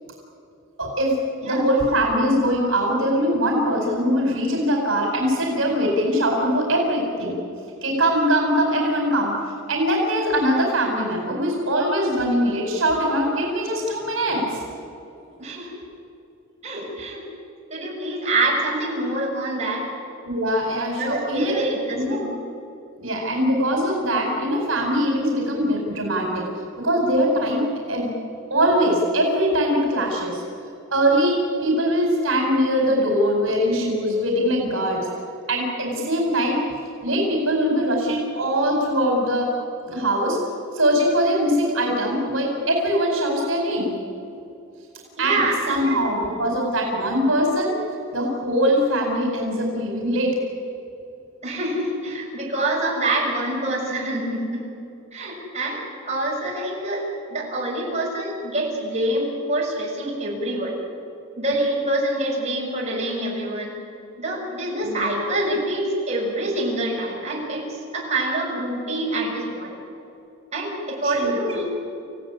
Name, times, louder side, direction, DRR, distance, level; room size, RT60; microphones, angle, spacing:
voice 1, 0.8-1.1 1.4-7.4 7.8-9.3 9.7-14.6 20.2-21.6 21.9-22.2 23.0-26.4 26.8-28.1 28.5-30.4 30.9-35.1 35.5-36.6 37.0-39.5 39.8-40.4 40.7-43.9 45.2-45.4 45.7-47.7 48.1-50.4 64.8-65.3 71.0-71.6, equal, 70° right, 1 dB, 4.8 m, -22 dB
voice 2, 15.4-15.7 16.6-17.2 17.7-19.9 20.9-22.3 45.2-45.9 51.4-54.7 55.1-57.0 57.3-60.7 61.4-63.7 64.2-69.8 70.5-71.6, right 1 dB, 35° right, -3 dB, 7.1 m, -26 dB
28.5 x 16.5 x 10.0 m, 2.7 s
head